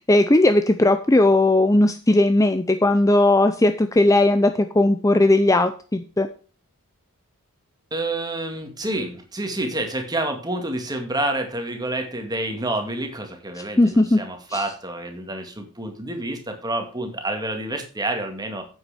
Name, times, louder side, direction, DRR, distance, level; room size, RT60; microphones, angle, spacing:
voice 1, 0.0-6.3 13.8-14.2 14.5-14.6, left 2 dB, 15° left, 9 dB, 0.5 m, -17 dB
voice 2, 7.9-18.6, right 1 dB, 20° right, 4 dB, 2.0 m, -28 dB
9.6 x 8.0 x 5.0 m, 0.38 s
head